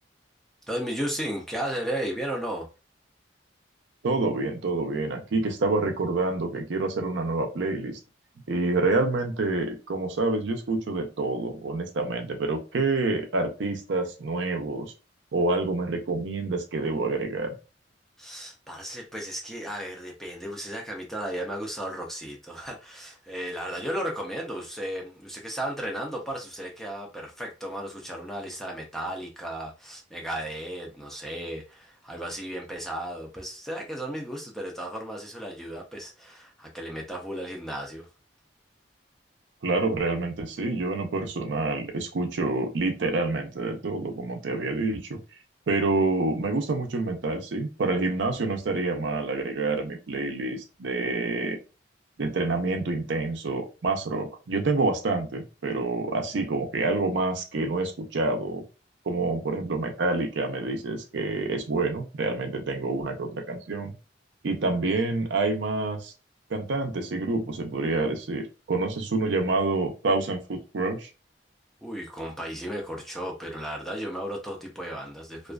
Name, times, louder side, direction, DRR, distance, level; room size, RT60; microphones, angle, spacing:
voice 1, 0.7-2.7 18.2-38.1 71.8-75.5, right 1 dB, ahead, 0.4 m, -34 dB
voice 2, 4.0-8.0 8.5-14.9 15.3-17.6 39.6-45.2 45.7-51.6 52.2-58.6 59.1-63.9 64.4-66.1 66.5-71.1, right 3 dB, 75° right, 0.5 m, -27 dB
2.4 x 2.3 x 2.3 m
head